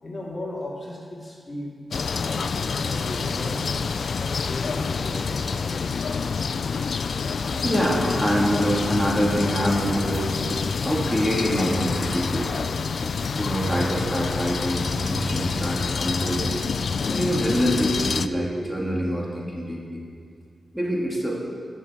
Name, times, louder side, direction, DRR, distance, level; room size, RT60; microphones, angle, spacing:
voice 1, 0.0-1.8 2.2-3.9 4.2-6.1, left 1 dB, 30° left, -3 dB, 2.4 m, -36 dB
sound 1, 1.9-18.3, left 5 dB, 65° left, 0.4 m, -27 dB
voice 2, 7.2-10.4 10.8-12.6 13.0-16.6 17.1-20.0 20.7-21.4, equal, ahead, -4 dB, 2.4 m, -25 dB
11.0 x 6.6 x 8.4 m, 2.2 s
cardioid pair, 55°, 0 cm